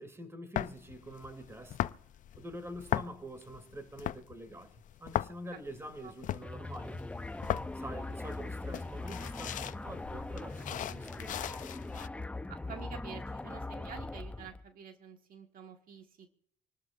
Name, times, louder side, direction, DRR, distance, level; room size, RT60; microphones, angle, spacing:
voice 1, 0.0-1.9 2.4-4.7 5.0-7.0 7.7-11.5, right 1 dB, 15° right, 2.5 m, -46 dB
sound 1, 0.5-12.1, left 12 dB, 50° left, 0.5 m, -39 dB
sound 2, 6.4-14.6, left 2 dB, 5° left, 0.6 m, -41 dB
voice 2, 12.5-16.3, right 7 dB, 55° right, 1.7 m, -48 dB
27.0 x 12.5 x 2.6 m
cardioid pair, 110°, 17 cm